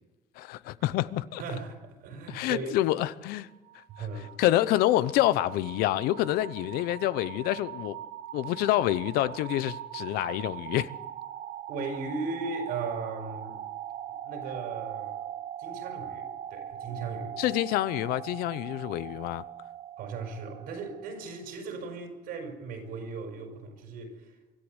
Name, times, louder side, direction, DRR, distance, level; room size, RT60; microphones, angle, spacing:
voice 1, 0.4-1.4 2.3-3.5 4.0-4.1 4.4-8.0 8.3-10.9 17.4-19.4, left 15 dB, 90° left, 0.8 m, -27 dB
voice 2, 1.4-2.8 3.9-4.3 9.5-9.6 11.7-13.6 14.2-15.2 15.6-17.4 20.0-24.4, right 4 dB, 85° right, 5.4 m, -37 dB
sound 1, 3.5-21.4, right 10 dB, 65° right, 1.2 m, -41 dB
24.5 x 14.0 x 8.0 m
cardioid pair, 100°, 15 cm